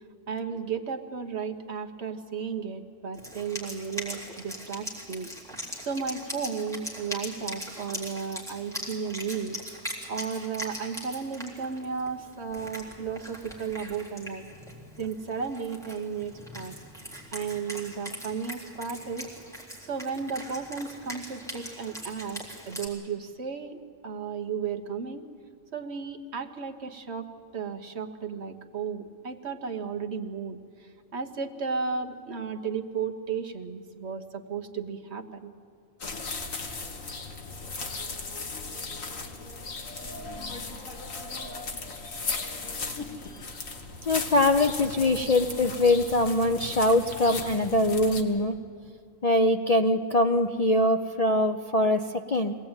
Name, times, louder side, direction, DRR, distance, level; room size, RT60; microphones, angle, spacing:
voice 1, 0.3-5.3 5.8-14.5 15.0-16.8 17.3-19.3 19.8-25.2 25.7-27.3 27.5-35.5, right 6 dB, 55° right, 5 dB, 1.4 m, -34 dB
Wind instrument woodwind instrument, 3.1-22.9, equal, ahead, 3.6 m, -41 dB
sound 1, 36.0-48.2, left 4 dB, 80° left, 2.0 m, -36 dB
voice 2, 44.0-48.5 49.2-52.6, left 1 dB, 40° left, 6 dB, 0.5 m, -23 dB
23.0 x 17.5 x 8.9 m, 2.3 s
omnidirectional pair, 1.4 m